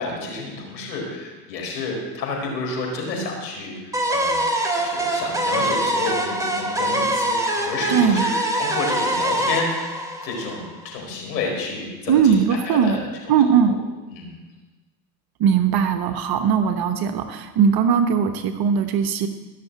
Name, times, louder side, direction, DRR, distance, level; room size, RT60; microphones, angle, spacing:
voice 1, 0.0-12.4 12.7-13.4 14.1-14.3, left 3 dB, 85° left, -1 dB, 4.8 m, -30 dB
sound 1, 3.9-10.9, right 1 dB, 5° right, 2.8 m, -24 dB
voice 2, 7.9-8.3 12.1-13.0 13.3-13.8 15.4-19.3, right 7 dB, 45° right, 8 dB, 1.1 m, -19 dB
15.5 x 6.7 x 8.2 m, 1.2 s
hypercardioid pair, 80°, 49 cm